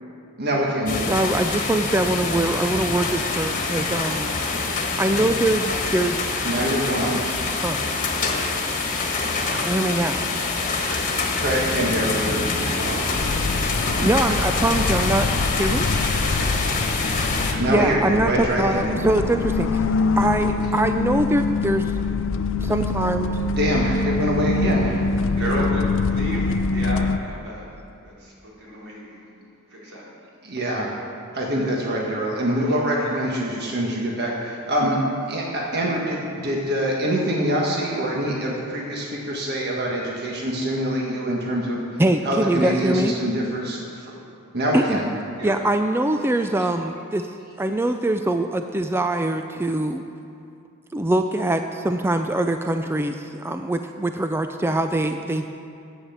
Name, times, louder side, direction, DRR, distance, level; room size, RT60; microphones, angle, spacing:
voice 1, 0.4-1.1 6.4-7.2 11.4-13.0 17.6-18.9 23.6-25.3 30.4-30.9 31.3-35.0 35.2-41.8 42.2-44.1 44.5-45.1, equal, 50° right, -2 dB, 1.5 m, -25 dB
sound 1, 0.9-17.5, left 3 dB, 35° left, 1.5 m, -25 dB
voice 2, 1.1-4.3 5.0-6.2 7.5-7.8 9.5-10.2 10.9-11.0 14.0-15.3 15.6-15.9 17.7-19.8 20.2-21.9 22.6-23.3 42.0-43.2 44.7-45.0 45.4-47.3 47.6-50.0 50.9-55.5, right 1 dB, 10° right, 7 dB, 0.3 m, -23 dB
sound 2, 13.1-27.2, left 3 dB, 60° left, 0.5 m, -24 dB
voice 3, 25.4-27.7 28.0-29.3 29.7-30.1 45.4-45.6 46.4-46.7 47.5-47.6, equal, 85° right, -6 dB, 3.8 m, -33 dB
11.0 x 9.1 x 7.2 m, 2.6 s
head